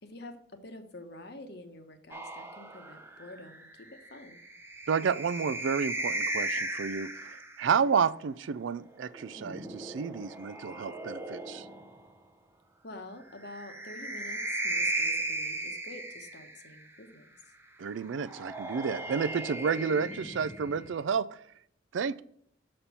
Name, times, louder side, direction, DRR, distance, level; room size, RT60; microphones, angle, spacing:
voice 1, 0.0-4.4 7.9-8.0 12.8-17.5, left 2 dB, 55° left, 7 dB, 1.0 m, -48 dB
sound 1, 2.1-7.6 9.0-12.0 13.4-16.8 18.1-21.0, right 2 dB, 10° right, 0.6 m, -36 dB
voice 2, 4.9-11.7 17.8-21.3 21.9-22.2, right 6 dB, 70° right, 15 dB, 0.4 m, -30 dB
6.8 x 4.4 x 5.5 m, 0.67 s
head